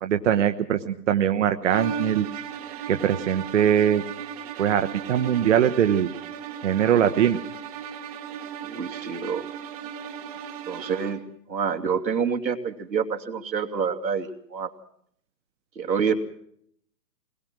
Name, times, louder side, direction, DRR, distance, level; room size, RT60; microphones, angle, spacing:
voice 1, 0.0-2.2 2.9-4.0 4.6-6.1 6.6-7.4, right 9 dB, 45° right, 7 dB, 1.2 m, -22 dB
sound 1, 1.6-11.3, right 7 dB, 20° right, 1.2 m, -36 dB
voice 2, 8.6-9.4 10.7-11.2 11.5-14.7 15.8-16.1, right 6 dB, 90° right, 3 dB, 2.9 m, -27 dB
23.5 x 21.0 x 6.1 m, 0.68 s
hypercardioid pair, 155°, 50 cm